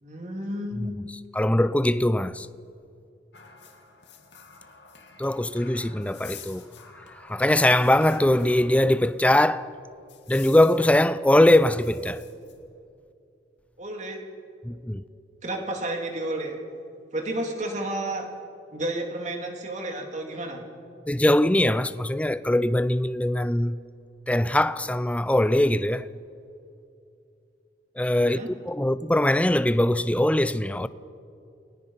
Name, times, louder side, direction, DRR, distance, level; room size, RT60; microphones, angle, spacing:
voice 1, 0.0-0.9 13.8-14.2 15.4-16.6 17.1-18.3 18.7-20.6 28.2-28.5, right 1 dB, 40° right, 3.0 m, -31 dB
voice 2, 1.3-2.5 5.2-6.7 7.2-9.7 10.3-12.2 14.6-15.0 21.1-23.8 24.3-26.1 28.0-30.9, left 1 dB, 5° left, 0.5 m, -21 dB
sound 1, 3.3-9.1 9.4-9.5 10.1-11.0 11.6-12.6, left 7 dB, 75° left, 2.3 m, -48 dB
30.0 x 22.0 x 5.8 m
head